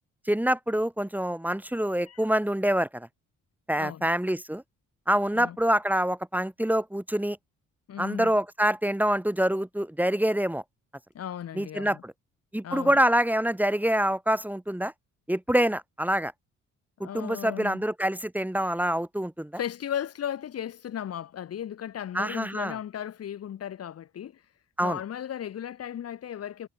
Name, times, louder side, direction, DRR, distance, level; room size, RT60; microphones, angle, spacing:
voice 1, 0.3-3.1 3.7-4.6 5.1-7.4 8.0-10.6 11.5-12.1 12.5-14.9 15.3-16.3 17.0-19.5 22.1-22.8 24.8-25.0, right 1 dB, 5° right, 1.4 m, -26 dB
voice 2, 3.8-4.1 5.3-5.6 7.9-8.3 11.1-12.0 12.6-13.0 17.0-17.8 19.5-24.4 24.8-26.7, left 10 dB, 55° left, 1.1 m, -36 dB
cardioid pair, 90°, 30 cm